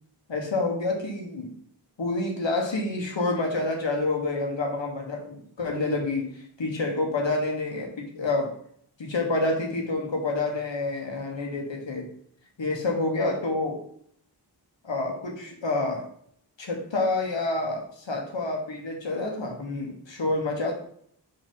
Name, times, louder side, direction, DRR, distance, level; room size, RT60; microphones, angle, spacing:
voice 1, 0.3-1.6 2.0-8.5 9.0-12.1 12.6-13.8 14.8-16.0 16.6-20.7, left 2 dB, 80° left, 1 dB, 1.5 m, -28 dB
4.6 x 4.2 x 5.6 m, 0.64 s
cardioid pair, 45°, 43 cm